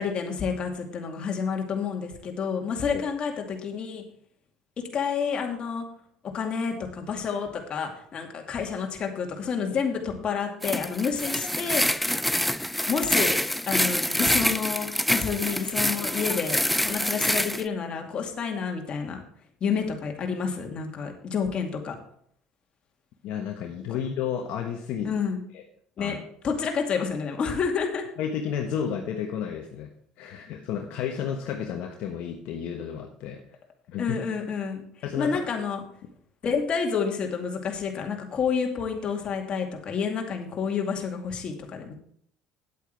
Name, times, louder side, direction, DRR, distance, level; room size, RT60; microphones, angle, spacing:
voice 1, 0.0-4.0 4.9-5.8 6.3-12.1 12.9-13.4 13.7-19.2 19.6-22.0 23.9-24.0 25.0-25.4 26.0-26.2 26.4-28.0 34.0-34.8 35.2-35.8 36.4-41.9, left 6 dB, 45° left, 2 dB, 2.3 m, -29 dB
sound 1, 10.6-17.6, left 1 dB, 5° left, 0.5 m, -26 dB
voice 2, 23.2-25.1 25.5-25.6 26.0-26.2 28.2-29.9 30.2-33.6 33.9-34.2 35.0-35.4, left 8 dB, 65° left, 2 dB, 1.2 m, -32 dB
9.7 x 8.3 x 4.7 m, 0.64 s
hypercardioid pair, 75°, 2 cm